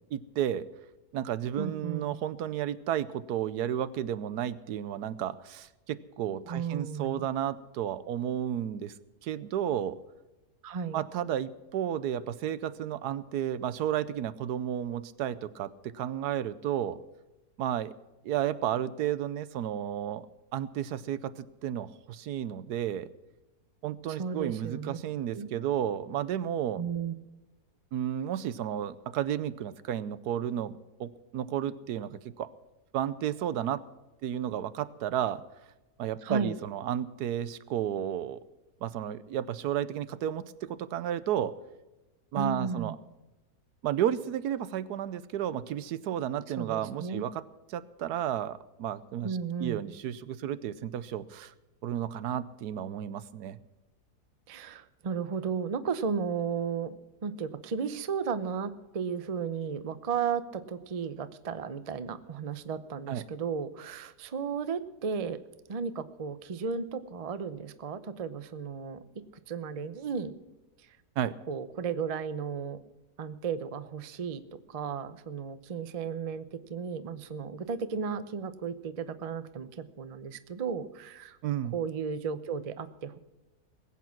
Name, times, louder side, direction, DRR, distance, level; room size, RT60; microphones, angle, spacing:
voice 1, 0.1-0.7 1.1-8.9 9.2-10.0 10.9-17.0 17.6-17.9 18.2-20.3 20.5-23.1 23.8-26.8 27.9-32.5 32.9-33.8 34.2-35.4 36.0-38.4 38.8-41.5 42.3-43.0 43.8-47.4 47.7-51.5 51.8-53.6 63.1-63.2 71.2-71.4 81.4-81.8, right 10 dB, 80° right, 16 dB, 1.2 m, -32 dB
voice 2, 1.6-2.2 6.5-7.2 10.6-11.1 24.1-25.0 25.3-25.5 26.8-27.1 36.2-36.6 42.3-43.0 46.6-47.2 49.2-49.9 54.5-65.4 65.7-69.0 69.5-70.3 71.5-72.8 73.2-74.4 74.7-81.4 81.7-83.2, right 6 dB, 45° right, 12 dB, 0.5 m, -34 dB
20.5 x 8.5 x 5.9 m, 1.1 s
omnidirectional pair, 1.7 m